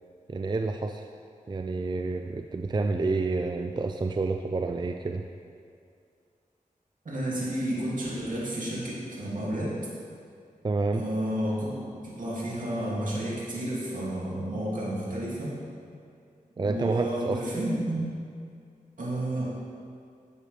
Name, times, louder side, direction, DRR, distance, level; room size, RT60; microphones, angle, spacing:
voice 1, 0.3-1.0 1.5-5.2 10.6-11.0 16.6-17.4, right 3 dB, 30° right, 5 dB, 0.4 m, -29 dB
voice 2, 7.0-9.7 10.9-11.7 12.2-15.5 16.6-18.1 19.0-19.4, right 1 dB, 70° right, -7 dB, 2.5 m, -31 dB
11.0 x 7.7 x 3.3 m, 2.4 s
wide cardioid pair, 60°, 14 cm